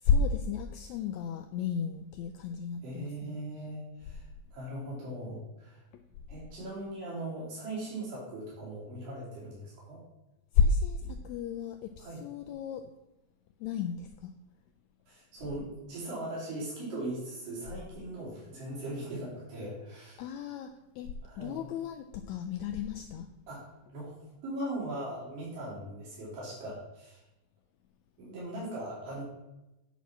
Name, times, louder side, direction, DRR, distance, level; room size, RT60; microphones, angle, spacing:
voice 1, 0.0-3.4 10.5-12.8 13.6-14.3 20.2-23.3, left 5 dB, 85° left, 6 dB, 1.6 m, -32 dB
voice 2, 2.8-4.2 4.5-5.8 6.3-10.0 11.0-11.1 12.0-12.2 15.1-20.3 21.2-21.6 23.5-23.7 23.9-27.2 28.2-29.2, right 1 dB, 85° right, -7 dB, 4.6 m, -39 dB
9.5 x 4.3 x 5.9 m, 0.96 s
omnidirectional pair, 3.7 m